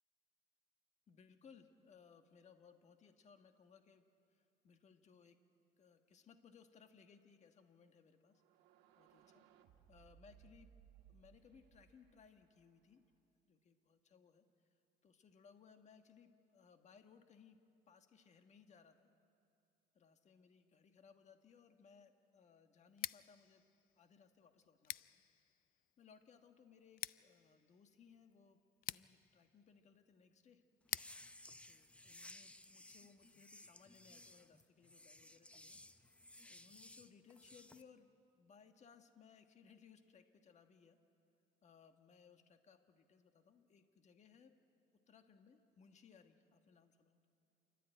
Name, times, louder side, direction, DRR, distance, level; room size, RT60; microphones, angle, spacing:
voice 1, 1.1-4.0 4.3-5.4 5.8-8.4 9.0-9.4 9.9-10.7 11.1-13.0 13.5-14.4 15.0-17.6 17.9-19.1 19.9-23.6 23.9-25.2 26.0-28.6 28.9-30.6 31.6-35.8 36.5-38.1 38.3-41.0 41.6-44.5 45.1-47.2, left 6 dB, 45° left, 7 dB, 1.4 m, -65 dB
sound 1, 8.3-13.1, right 8 dB, 85° right, 1.5 m, -67 dB
Scissors, 22.9-32.7, left 14 dB, 60° left, 0.4 m, -51 dB
sound 2, 30.9-37.8, left 1 dB, 5° left, 0.7 m, -58 dB
28.5 x 12.5 x 9.1 m, 2.7 s
cardioid pair, 110°, 17 cm